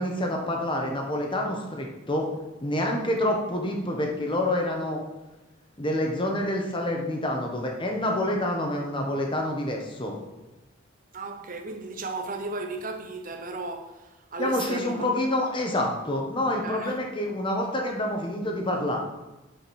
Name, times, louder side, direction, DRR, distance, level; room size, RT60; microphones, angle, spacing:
voice 1, 0.0-2.3 2.6-5.0 5.8-10.2 14.4-19.0, left 1 dB, 25° left, 1.2 m, -27 dB
voice 2, 11.1-15.1 16.6-17.0, right 3 dB, 40° right, 0.8 m, -35 dB
9.8 x 5.2 x 4.3 m
head